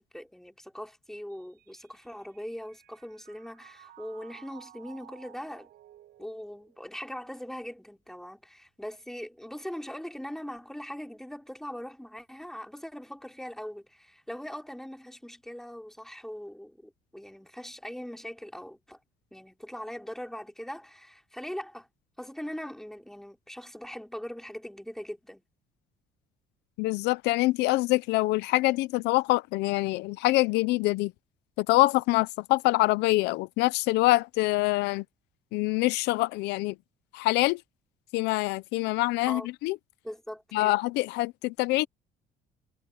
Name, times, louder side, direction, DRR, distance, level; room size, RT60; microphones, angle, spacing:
voice 1, 0.0-5.7 6.2-19.0 19.3-21.9 22.2-25.4 39.3-39.5 40.0-40.8, equal, ahead, 4.5 m, -41 dB
Mallet percussion, 1.3-7.7, right 13 dB, 70° right, 7.6 m, -55 dB
voice 2, 26.8-31.1 31.6-35.0 35.5-36.8 37.1-37.6 38.1-39.8 40.5-41.9, left 20 dB, 90° left, 0.6 m, -25 dB
cardioid pair, 110°, 17 cm